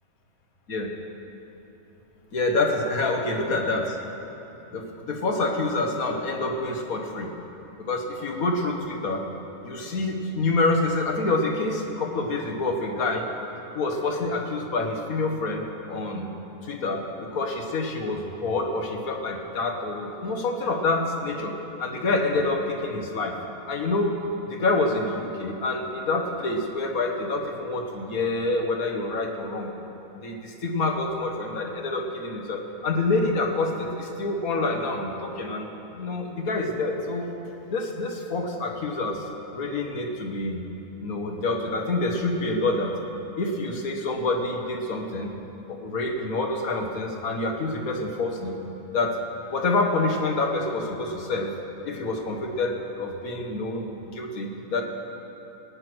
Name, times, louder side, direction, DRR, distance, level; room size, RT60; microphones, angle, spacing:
voice 1, 2.3-4.0 4.7-7.3 7.8-9.2 9.6-13.3 13.8-16.3 16.6-23.4 23.7-24.2 24.5-29.7 30.2-35.7 36.0-37.3 37.7-39.3 39.5-40.6 41.0-43.0 43.4-45.3 45.7-48.6 48.9-51.6 51.8-54.8, left 2 dB, 80° left, 3 dB, 1.8 m, -27 dB
18.5 x 9.7 x 6.2 m, 2.9 s
omnidirectional pair, 1.5 m